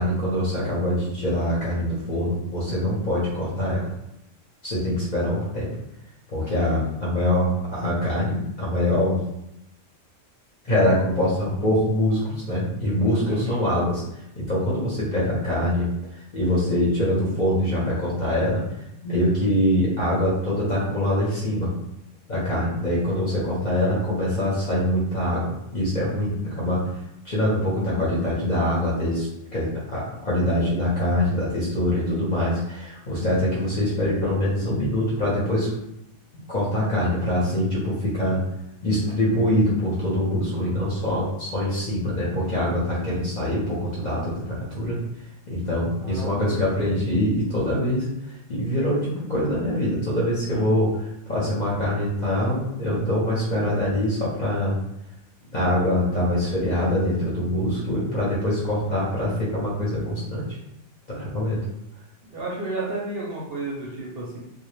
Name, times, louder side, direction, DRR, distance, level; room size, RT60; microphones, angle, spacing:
voice 1, 0.0-3.9 4.6-5.7 6.3-9.2 10.6-18.7 19.0-21.7 22.3-26.9 27.2-35.8 36.3-38.5 38.8-45.0 45.5-48.1 48.5-54.8 55.5-60.6 61.1-61.6, left 1 dB, 45° left, -7 dB, 0.7 m, -24 dB
voice 2, 13.3-13.6 46.0-47.2 62.3-64.4, right 2 dB, 60° right, -4 dB, 0.7 m, -32 dB
2.2 x 2.0 x 3.0 m, 0.84 s
omnidirectional pair, 1.3 m